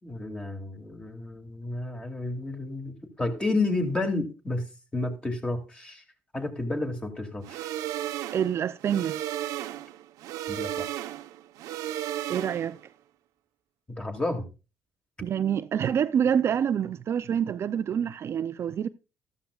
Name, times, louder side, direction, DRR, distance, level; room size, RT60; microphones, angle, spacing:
voice 1, 0.0-4.7 4.9-6.0 6.3-7.7 10.5-10.9 14.0-14.5, left 2 dB, 15° left, 2.5 m, -31 dB
sound 1, 7.4-12.8, right 12 dB, 80° right, 0.9 m, -34 dB
voice 2, 8.3-9.2 12.3-12.8 15.2-18.9, right 8 dB, 50° right, 0.5 m, -26 dB
14.0 x 12.5 x 2.4 m
cardioid pair, 100°, 6 cm